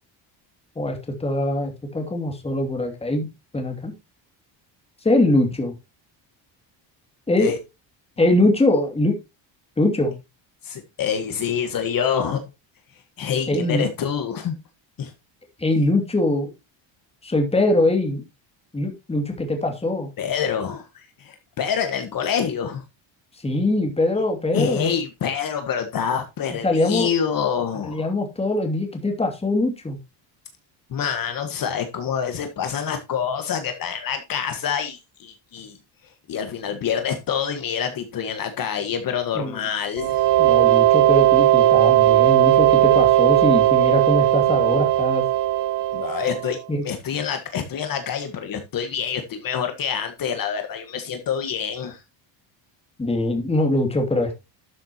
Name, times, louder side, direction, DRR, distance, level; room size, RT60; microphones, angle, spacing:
voice 1, 0.8-3.2 3.5-3.9 5.0-5.7 7.3-7.5 8.2-9.1 9.8-10.1 13.5-13.9 15.6-16.5 17.2-18.2 18.7-20.1 23.4-24.9 26.6-27.1 27.8-30.0 39.3-39.6 40.4-45.2 46.7-46.8 53.0-54.4, left 2 dB, 15° left, 2.7 m, -22 dB
voice 2, 10.6-12.5 12.9-14.6 15.0-15.1 20.2-22.8 24.5-28.1 30.9-35.8 36.0-40.3 45.9-52.0, left 7 dB, 45° left, 1.7 m, -26 dB
sound 1, 40.0-46.6, right 14 dB, 65° right, 0.7 m, -17 dB
12.5 x 7.1 x 3.0 m
cardioid pair, 145°, 46 cm